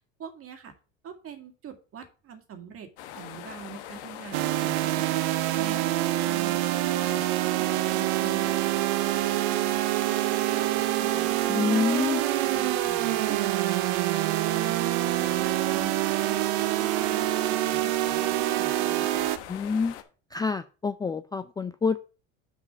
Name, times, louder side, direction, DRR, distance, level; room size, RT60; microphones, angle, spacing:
voice 1, 0.2-0.7 1.0-2.9 3.1-5.2 5.5-7.2 7.6-8.6 9.0-11.4 11.7-12.1 12.4-14.2 14.5-15.9 16.2-16.4 16.8-19.3, right 7 dB, 45° right, 6 dB, 1.9 m, -44 dB
sound 1, 3.0-20.0, left 11 dB, 80° left, 1.1 m, -42 dB
sound 2, 4.3-19.4, right 18 dB, 75° right, 0.6 m, -26 dB
voice 2, 11.5-12.2 19.5-19.9 20.3-22.0, left 5 dB, 10° left, 10 dB, 0.3 m, -27 dB
6.4 x 5.1 x 5.7 m, 0.35 s
supercardioid pair, 95°, 33 cm